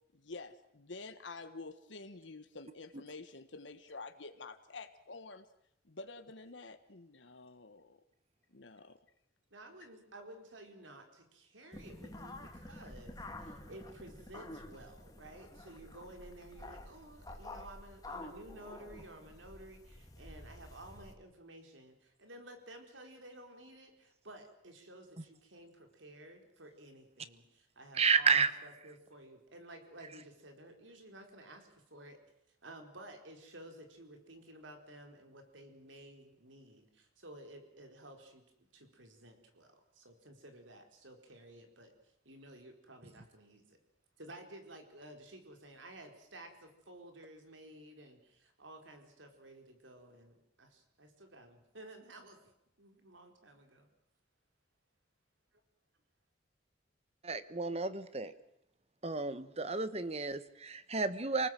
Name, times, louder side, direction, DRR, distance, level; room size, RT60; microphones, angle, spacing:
voice 1, 0.1-5.4 5.8-8.0 8.5-9.0, left 3 dB, 75° left, 8 dB, 1.4 m, -49 dB
voice 2, 9.5-32.2 32.6-38.4 38.7-41.9 42.2-43.8 44.2-52.5 52.8-53.9, right 1 dB, 90° right, 5 dB, 4.4 m, -53 dB
sound 1, 11.7-21.1, left 1 dB, 20° left, 2.3 m, -49 dB
voice 3, 27.9-28.5 57.2-58.3 59.0-61.5, right 5 dB, 35° right, 13 dB, 1.2 m, -31 dB
28.5 x 19.5 x 7.7 m, 0.76 s
head